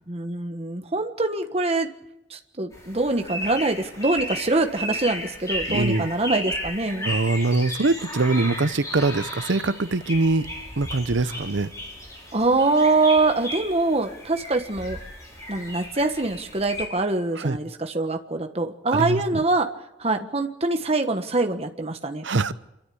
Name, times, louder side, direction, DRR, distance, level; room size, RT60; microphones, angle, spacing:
voice 1, 0.1-1.9 2.3-7.1 12.3-15.0 15.5-19.7 20.0-22.2, right 2 dB, 35° right, 6 dB, 1.4 m, -24 dB
sound 1, 2.7-16.8, equal, 15° left, 6.0 m, -34 dB
voice 2, 5.7-6.1 7.0-10.5 10.8-11.7 17.4-17.6 18.9-19.4 22.2-22.5, right 3 dB, 80° right, 14 dB, 0.8 m, -23 dB
27.5 x 13.5 x 8.6 m, 0.91 s
head